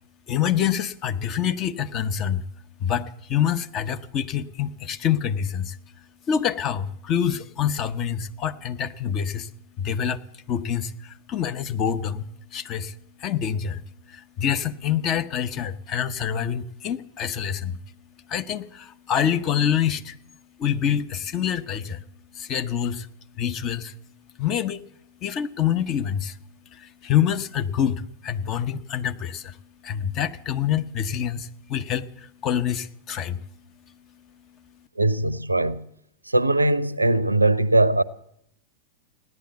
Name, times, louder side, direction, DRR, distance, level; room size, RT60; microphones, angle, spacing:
voice 1, 0.3-2.5 2.8-5.8 6.3-9.5 9.8-10.2 10.5-17.8 18.3-20.2 20.6-22.0 22.3-23.1 23.3-24.0 24.4-24.8 25.2-26.4 26.7-33.4, left 9 dB, 35° left, 0.7 m, -26 dB
voice 2, 35.0-35.9 36.2-38.0, right 2 dB, 85° right, 0.5 m, -20 dB
16.0 x 11.0 x 8.1 m
figure-of-eight pair, 90°, 0 cm